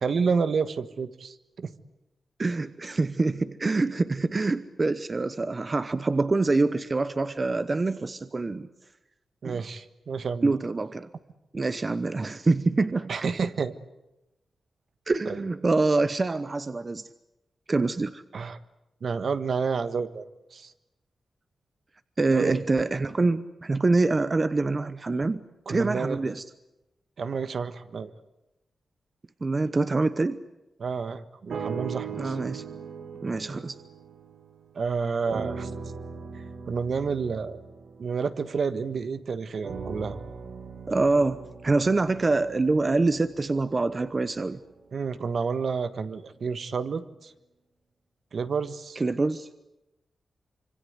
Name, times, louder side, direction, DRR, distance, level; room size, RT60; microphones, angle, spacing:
voice 1, 0.0-1.7 9.4-10.5 13.1-13.7 15.2-15.4 18.3-18.6 19.0-20.2 20.5-20.7 22.3-22.6 25.7-26.2 27.2-28.1 30.8-32.4 34.7-35.7 36.7-37.6 38.0-40.2 44.9-47.3 48.3-49.0, right 5 dB, 60° right, 11 dB, 1.4 m, -29 dB
voice 2, 2.4-8.7 9.4-9.6 10.4-11.1 11.5-13.1 15.1-17.1 17.7-18.2 22.2-26.4 29.4-30.4 32.1-32.6 33.2-33.8 40.9-44.6 49.0-49.5, right 3 dB, 30° right, 12 dB, 0.9 m, -25 dB
sound 1, 31.5-34.9 35.3-39.0 39.6-43.8 44.5-44.6, right 5 dB, 75° right, 2.4 m, -39 dB
26.0 x 25.0 x 8.1 m, 0.93 s
wide cardioid pair, 120°, 0 cm